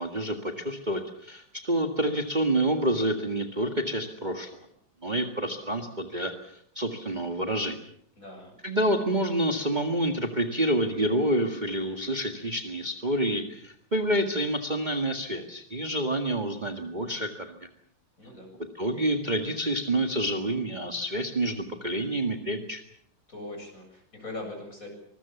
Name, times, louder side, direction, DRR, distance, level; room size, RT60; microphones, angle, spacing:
voice 1, 0.0-4.6 5.0-7.8 8.6-17.7 18.7-22.8, right 1 dB, 25° right, 5 dB, 1.8 m, -28 dB
voice 2, 8.2-8.5 18.2-18.5 23.3-24.9, left 2 dB, 45° left, 2 dB, 8.2 m, -40 dB
25.0 x 21.5 x 7.1 m, 0.65 s
omnidirectional pair, 2.1 m